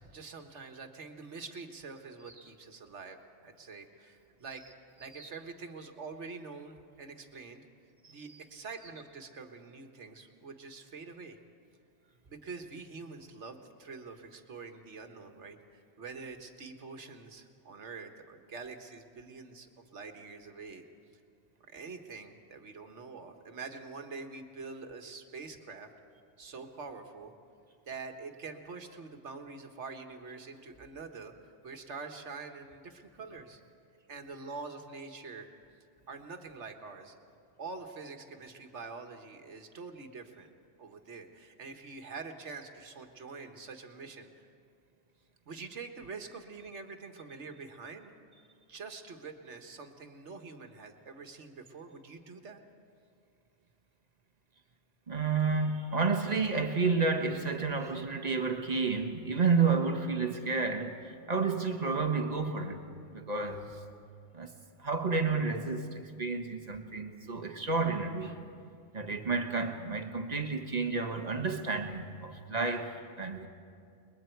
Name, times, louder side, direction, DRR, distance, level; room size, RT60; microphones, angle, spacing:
voice 1, 0.0-4.6 5.0-7.7 8.1-11.4 12.3-20.9 21.7-25.9 26.4-27.3 27.9-33.6 34.1-35.5 36.1-37.2 37.6-40.5 40.8-44.5 45.5-48.1 48.7-52.6, right 4 dB, 80° right, 1.7 m, -45 dB
voice 2, 55.1-62.8 63.1-63.8 64.3-64.5 64.8-68.4 68.9-73.5, right 4 dB, 35° right, 1.4 m, -31 dB
29.0 x 21.5 x 4.6 m
omnidirectional pair, 1.2 m